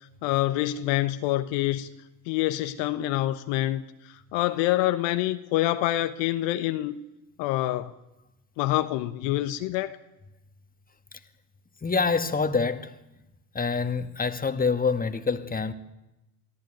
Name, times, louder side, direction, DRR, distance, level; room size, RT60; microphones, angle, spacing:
voice 1, 0.2-1.9 2.3-7.0 7.4-7.9 8.6-10.0, left 15 dB, 70° left, 1.2 m, -26 dB
voice 2, 11.8-12.9 13.5-15.7, left 4 dB, 20° left, 1.9 m, -26 dB
23.5 x 14.0 x 9.2 m
hypercardioid pair, 75°, 46 cm